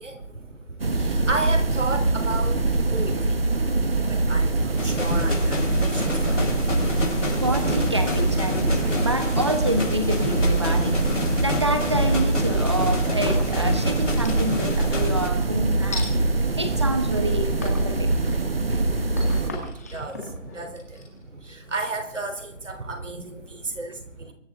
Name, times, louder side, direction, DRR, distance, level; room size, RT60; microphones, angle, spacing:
voice 1, 0.0-3.5 3.9-6.5 18.3-24.3, right 2 dB, 75° right, 6 dB, 3.7 m, -34 dB
sound 1, 0.8-19.5, right 2 dB, 50° right, 1.3 m, -23 dB
sound 2, 4.8-15.3, left 2 dB, 75° left, 4.9 m, -30 dB
voice 2, 7.1-16.1 16.5-18.1, right 1 dB, 20° right, 8 dB, 1.2 m, -28 dB
sound 3, 13.3-13.7 14.1-14.8 15.9-16.1 16.8-17.2 17.6-18.0 18.4-22.1, left 2 dB, 15° left, 1.8 m, -37 dB
23.5 x 12.0 x 3.8 m, 0.71 s
figure-of-eight pair, 180°, 37 cm